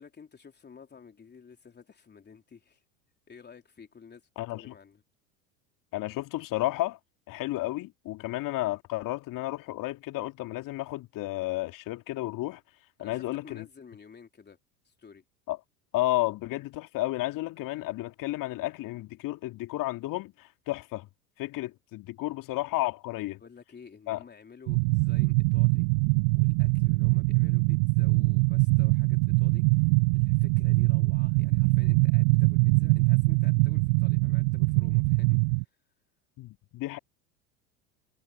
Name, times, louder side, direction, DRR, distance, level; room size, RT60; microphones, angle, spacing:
voice 1, 0.0-2.8 3.3-5.0 13.0-14.6 14.8-15.2 23.4-25.9 26.3-35.8, left 6 dB, 20° left, 3.6 m, -52 dB
voice 2, 4.4-4.7 5.9-7.0 7.3-12.6 13.0-13.7 15.5-15.6 15.9-21.1 21.4-23.4 24.1-24.2 36.4-37.0, left 17 dB, 45° left, 2.6 m, -32 dB
sound 1, 24.7-35.6, right 32 dB, 45° right, 0.4 m, -23 dB
figure-of-eight pair, 75°, 45 cm